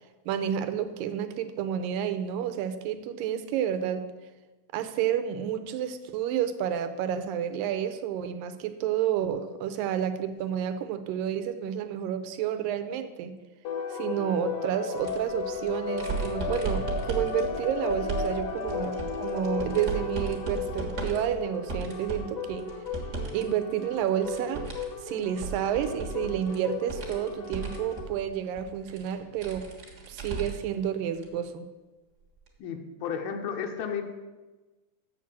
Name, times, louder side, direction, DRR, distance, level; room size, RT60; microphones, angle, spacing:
voice 1, 0.3-4.1 4.7-13.4 13.9-22.7 23.3-24.6 25.0-29.7 30.1-31.7, right 9 dB, 85° right, 10 dB, 2.3 m, -30 dB
sound 1, 13.6-28.0, left 5 dB, 65° left, 1.5 m, -35 dB
sound 2, 14.9-23.4 23.7-30.7 31.1-31.3 32.5-32.6, right 4 dB, 45° right, 1.3 m, -37 dB
voice 2, 32.6-34.0, left 7 dB, 80° left, 4 dB, 2.6 m, -33 dB
7.3 x 6.9 x 7.2 m, 1.2 s
omnidirectional pair, 4.1 m